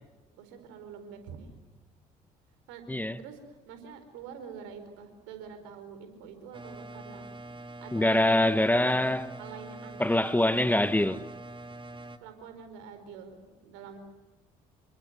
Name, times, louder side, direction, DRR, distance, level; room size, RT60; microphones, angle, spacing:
voice 1, 0.3-1.5 2.7-7.2 7.8-8.4 9.4-10.5 12.2-14.0, right 6 dB, 75° right, 4.6 m, -46 dB
sound 1, 6.5-12.2, right 2 dB, 25° right, 2.3 m, -44 dB
voice 2, 7.9-9.3 10.0-11.2, left 1 dB, 10° left, 1.2 m, -24 dB
28.5 x 24.5 x 8.1 m
hypercardioid pair, 50°, 20 cm